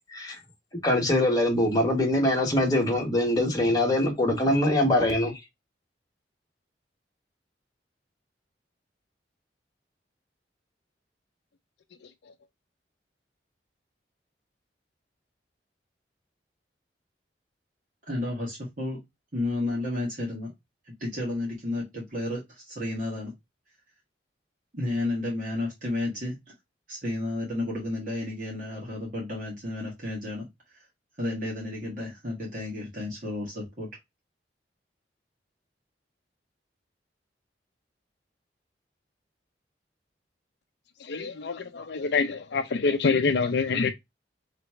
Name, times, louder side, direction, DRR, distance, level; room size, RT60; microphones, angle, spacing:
voice 1, 0.8-5.3, left 1 dB, 20° left, 1.3 m, -23 dB
voice 2, 18.1-19.0 19.3-20.5 20.8-23.3 24.7-26.4 26.9-30.8 31.2-33.9, left 2 dB, 45° right, 1.6 m, -32 dB
voice 3, 41.0-43.9, left 4 dB, 65° left, 0.5 m, -26 dB
3.3 x 3.0 x 4.4 m
head